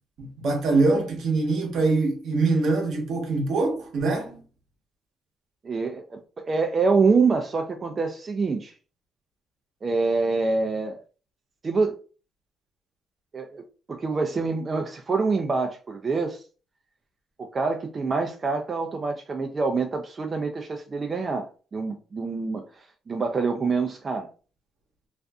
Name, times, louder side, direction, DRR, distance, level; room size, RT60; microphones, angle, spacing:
voice 1, 0.2-4.4, right 3 dB, 70° right, 0.8 m, -23 dB
voice 2, 5.6-8.7 9.8-11.0 11.6-11.9 13.3-13.6 13.9-16.4 17.4-21.5 21.7-24.3, right 4 dB, 35° right, 0.4 m, -26 dB
2.5 x 2.4 x 2.2 m
cardioid pair, 90°, 0 cm